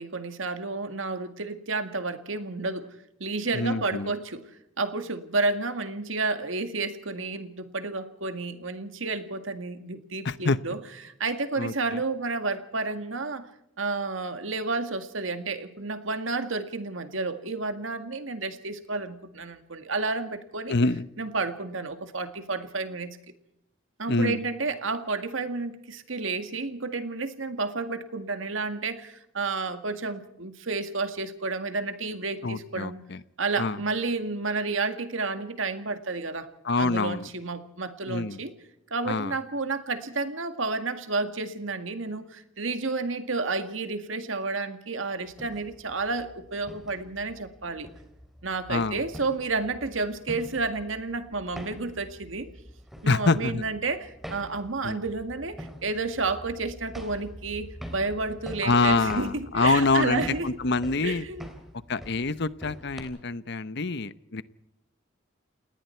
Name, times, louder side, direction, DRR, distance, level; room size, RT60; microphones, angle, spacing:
voice 1, 0.0-2.9 3.2-10.8 11.0-13.5 13.8-20.8 21.2-23.2 24.0-33.0 33.4-36.5 36.8-38.5 38.9-47.9 48.4-52.5 53.0-60.5 61.0-61.5, right 3 dB, 75° right, 9 dB, 2.0 m, -31 dB
voice 2, 3.5-4.1 10.2-10.6 11.6-11.7 20.7-21.1 24.1-24.4 32.4-33.2 33.6-33.8 36.6-37.3 38.1-38.4 39.1-39.3 48.7-49.0 53.1-53.6 54.8-55.0 58.6-61.3 61.9-64.4, left 3 dB, 60° left, 15 dB, 0.9 m, -26 dB
sound 1, 45.3-63.0, equal, ahead, 3.4 m, -45 dB
29.0 x 19.5 x 4.5 m, 0.81 s
head